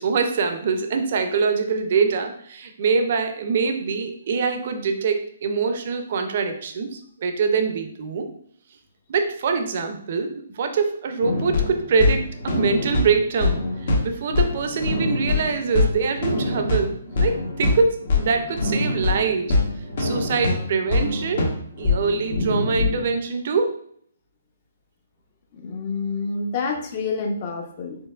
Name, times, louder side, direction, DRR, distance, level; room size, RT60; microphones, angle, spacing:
voice 1, 0.0-8.3 9.1-16.9 17.2-19.6 20.0-21.5 21.8-23.8, right 5 dB, 55° right, 6 dB, 0.4 m, -24 dB
sound 1, 11.2-23.1, left 2 dB, 60° left, 1.1 m, -24 dB
voice 2, 25.5-28.0, left 4 dB, 40° left, 3 dB, 0.6 m, -28 dB
4.4 x 2.9 x 2.4 m, 0.63 s
hypercardioid pair, 150°, 0 cm